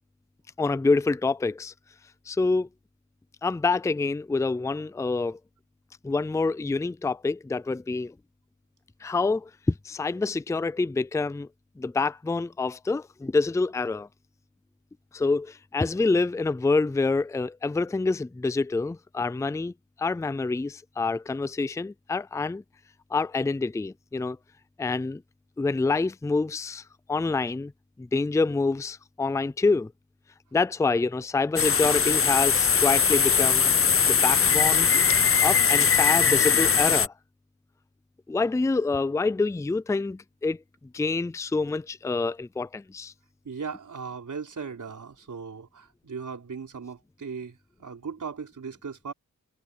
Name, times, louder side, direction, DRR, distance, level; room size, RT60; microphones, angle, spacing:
voice 1, 0.6-1.7 2.3-2.7 3.4-5.4 6.0-8.1 9.0-11.5 11.8-14.1 15.1-19.7 20.0-22.6 23.1-24.4 24.8-25.2 25.6-26.8 27.1-27.7 28.0-29.9 30.5-33.7 34.1-34.9 35.4-37.1 38.3-40.6 40.9-43.1, left 3 dB, 10° left, 0.4 m, -26 dB
sound 1, 31.6-37.1, left 6 dB, 45° left, 0.7 m, -21 dB
voice 2, 43.4-49.1, right 5 dB, 70° right, 4.3 m, -38 dB
wide cardioid pair, 105°, 31 cm